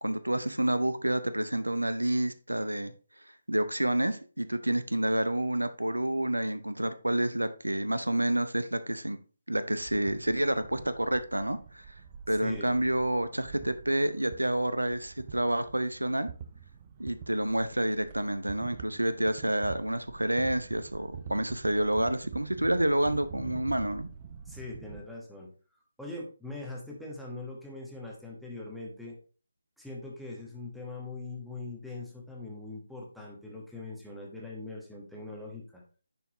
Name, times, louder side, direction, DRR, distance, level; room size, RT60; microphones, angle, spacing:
voice 1, 0.0-2.9 3.5-9.2 9.5-11.9 12.3-16.3 17.0-24.1, right 1 dB, 80° right, 12 dB, 0.6 m, -29 dB
sound 1, 9.8-25.0, right 7 dB, 25° right, 0.6 m, -46 dB
voice 2, 12.3-12.7 24.4-25.5 26.0-29.1 29.8-35.8, left 2 dB, ahead, -3 dB, 1.2 m, -42 dB
10.0 x 4.5 x 3.0 m, 0.38 s
figure-of-eight pair, 150°, 0 cm